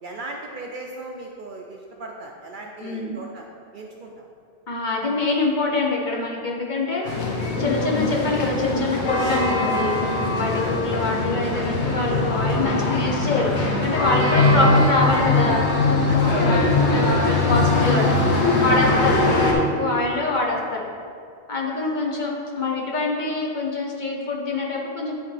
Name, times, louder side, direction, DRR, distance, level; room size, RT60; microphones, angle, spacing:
voice 1, 0.0-3.5 3.7-4.3 7.0-7.2 10.5-10.8 14.2-14.4 16.1-18.7 20.0-20.1 21.7-22.0, right 2 dB, 60° right, 1 dB, 0.6 m, -37 dB
voice 2, 2.8-3.2 4.7-7.1 7.6-10.0 10.3-15.6 16.5-18.0 18.6-19.2 19.5-20.8 21.5-22.3 22.6-25.1, left 2 dB, 45° left, -1 dB, 0.8 m, -25 dB
sound 1, 7.0-19.5, left 2 dB, 75° left, 1.2 m, -21 dB
9.8 x 3.7 x 3.2 m, 2.3 s
omnidirectional pair, 1.2 m